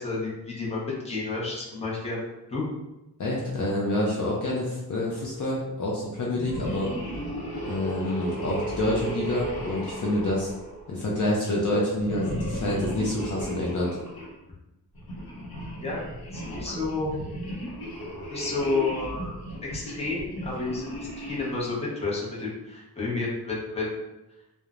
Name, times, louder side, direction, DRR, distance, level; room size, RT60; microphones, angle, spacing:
voice 1, 0.0-2.2 2.5-2.7 15.8-16.0 16.3-17.2 18.3-19.3 19.6-20.9 21.3-24.0, left 3 dB, 15° left, -5 dB, 0.7 m, -30 dB
voice 2, 3.2-6.9 7.7-10.5 10.9-14.0, left 1 dB, 50° left, -3 dB, 0.5 m, -27 dB
sound 1, 6.3-11.1 12.0-14.3 14.9-21.8, equal, 70° left, 0.8 m, -35 dB
3.0 x 2.0 x 2.4 m, 0.97 s
wide cardioid pair, 135°, 38 cm